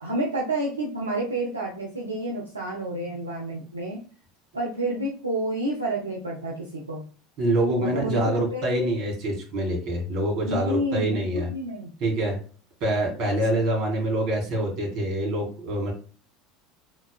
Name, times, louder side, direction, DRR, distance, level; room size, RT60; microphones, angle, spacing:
voice 1, 0.0-4.0 4.5-7.0 7.8-9.0 10.5-11.9, right 1 dB, 85° right, -2 dB, 0.7 m, -29 dB
voice 2, 7.4-11.5 12.0-12.4 12.8-15.9, right 1 dB, 55° right, 0 dB, 2.3 m, -25 dB
5.3 x 3.6 x 2.3 m, 0.40 s
figure-of-eight pair, 75°, 0 cm